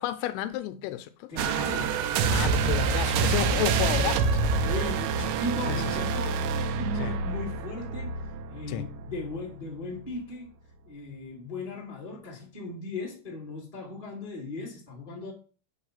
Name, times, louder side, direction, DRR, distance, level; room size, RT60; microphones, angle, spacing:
voice 1, 0.0-1.3 2.3-4.2 5.7-6.0 7.0-7.1 8.7-8.8, left 13 dB, 85° left, 2.6 m, -31 dB
voice 2, 1.3-2.8 4.6-6.4 6.7-8.2 8.5-10.5 10.9-15.3, left 2 dB, 10° left, 1.9 m, -37 dB
sound 1, 1.4-9.5 9.9-10.2, right 5 dB, 85° right, 2.5 m, -27 dB
8.2 x 3.5 x 5.7 m
omnidirectional pair, 4.5 m